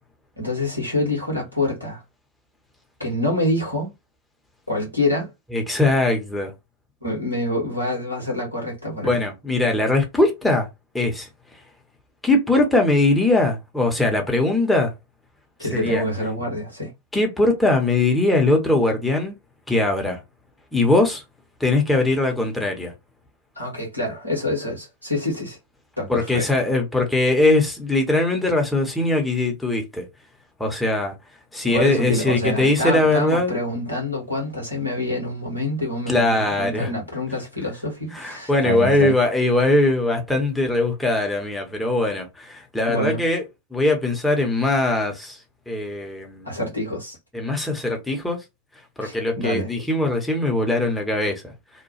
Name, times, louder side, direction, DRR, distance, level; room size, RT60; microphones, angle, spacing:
voice 1, 0.4-2.0 3.0-3.9 4.7-5.3 7.0-9.2 15.6-16.9 23.5-25.6 26.0-26.5 31.6-39.1 42.9-43.2 46.4-47.2 49.0-49.7, left 1 dB, 90° right, 1.5 m, -26 dB
voice 2, 5.5-6.5 9.0-10.7 10.9-11.3 12.2-14.9 15.7-16.0 17.1-19.4 19.7-20.2 20.7-21.2 21.6-22.9 26.1-30.1 30.6-31.1 31.5-33.6 36.1-36.9 38.1-43.4 43.7-45.4 45.7-46.5 47.3-48.4 49.0-51.4, left 2 dB, 5° left, 0.9 m, -21 dB
2.9 x 2.2 x 2.9 m
figure-of-eight pair, 90°, 0 cm